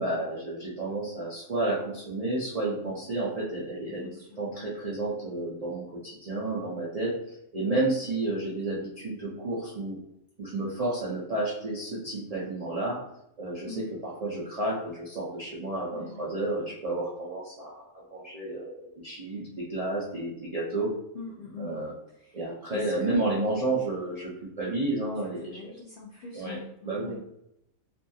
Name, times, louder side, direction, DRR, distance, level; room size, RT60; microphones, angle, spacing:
voice 1, 0.0-4.1 4.4-7.1 7.5-10.0 10.4-13.0 13.4-20.9 21.6-21.9 22.3-25.7 26.3-27.2, right 2 dB, 85° right, -6 dB, 0.3 m, -31 dB
voice 2, 3.9-4.3 13.7-13.9 15.9-16.2 21.1-21.8 22.7-23.5 25.4-27.2, left 4 dB, 85° left, -2 dB, 0.4 m, -42 dB
2.6 x 2.3 x 2.7 m, 0.79 s
omnidirectional pair, 1.5 m